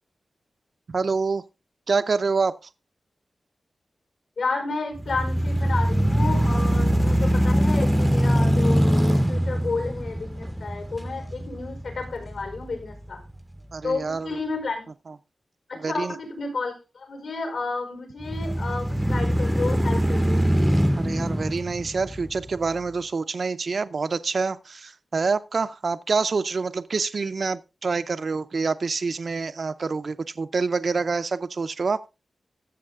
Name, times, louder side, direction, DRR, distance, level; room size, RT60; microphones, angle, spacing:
voice 1, 0.9-1.4 1.9-2.6 13.7-14.4 15.8-16.1 21.0-32.0, right 4 dB, 45° right, 0.5 m, -26 dB
voice 2, 4.4-13.2 13.8-14.9 15.7-20.4, left 3 dB, 80° left, 4.9 m, -31 dB
sound 1, 5.0-13.1 13.6-13.7 18.2-22.7, equal, 5° right, 0.6 m, -23 dB
14.5 x 7.1 x 3.5 m
wide cardioid pair, 165°, 0 cm